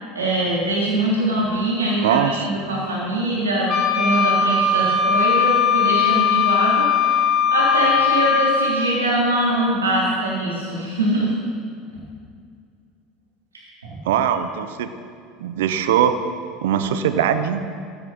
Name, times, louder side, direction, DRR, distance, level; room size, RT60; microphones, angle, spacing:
voice 1, 0.1-7.2 7.5-11.3 13.8-13.9, right 1 dB, 85° right, -5 dB, 3.7 m, -22 dB
voice 2, 2.0-2.4 14.1-14.9 15.4-16.2 16.6-17.7, right 9 dB, 70° right, 10 dB, 0.8 m, -20 dB
Wind instrument woodwind instrument, 3.7-8.8, left 6 dB, 40° left, 4.1 m, -19 dB
13.5 x 13.0 x 4.4 m, 2.3 s
figure-of-eight pair, 75°, 0 cm